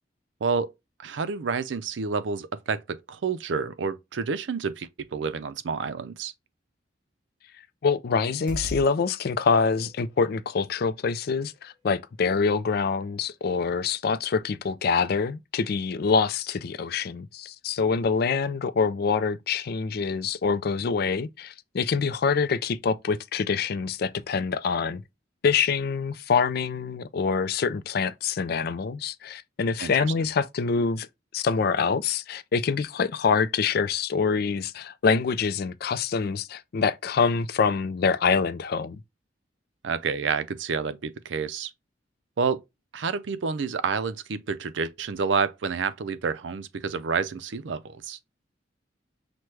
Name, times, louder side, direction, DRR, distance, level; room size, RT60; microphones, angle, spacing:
voice 1, 0.4-0.7 1.0-6.3 29.8-30.1 39.8-41.7 42.4-42.6 42.9-48.2, right 5 dB, 85° right, 0.5 m, -29 dB
voice 2, 7.8-25.0 25.4-31.1 31.3-39.0, left 5 dB, 60° left, 0.4 m, -25 dB
sound 1, 8.3-8.9 9.5-10.4 11.5-11.6 12.2-12.5 12.9-13.1 13.6-13.7, equal, 55° right, 1.6 m, -40 dB
6.0 x 2.2 x 3.1 m
head